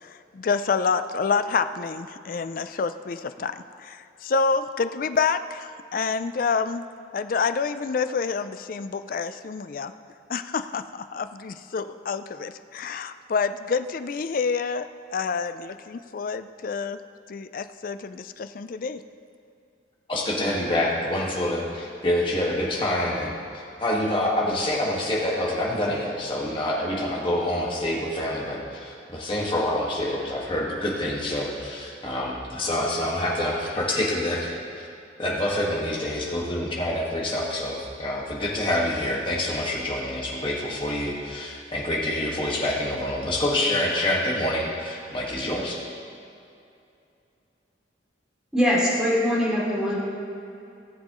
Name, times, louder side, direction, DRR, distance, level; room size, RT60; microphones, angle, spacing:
voice 1, 0.0-6.8 7.1-9.9 10.3-17.0 17.3-19.0, left 5 dB, 50° left, 11 dB, 0.4 m, -28 dB
voice 2, 20.1-34.9 35.2-45.8, left 1 dB, 30° left, -3 dB, 1.7 m, -27 dB
voice 3, 48.5-50.0, equal, 5° right, -7 dB, 2.8 m, -22 dB
17.5 x 7.5 x 3.1 m, 2.6 s
head